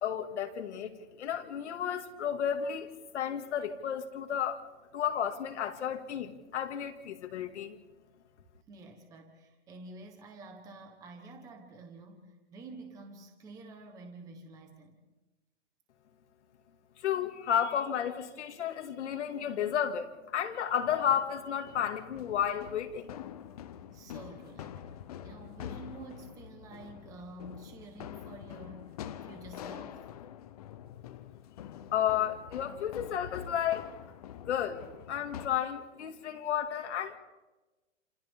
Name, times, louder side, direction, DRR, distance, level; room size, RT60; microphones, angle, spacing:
voice 1, 0.0-4.6 4.9-7.8 17.0-23.1 31.9-33.9 34.5-37.2, left 9 dB, 65° left, 2.3 m, -32 dB
voice 2, 8.7-15.0 23.9-25.0 25.2-30.3, right 2 dB, 10° right, 1.2 m, -49 dB
sound 1, 20.8-35.5, left 10 dB, 30° left, 0.7 m, -46 dB
30.0 x 27.5 x 3.7 m
hypercardioid pair, 180°, 37 cm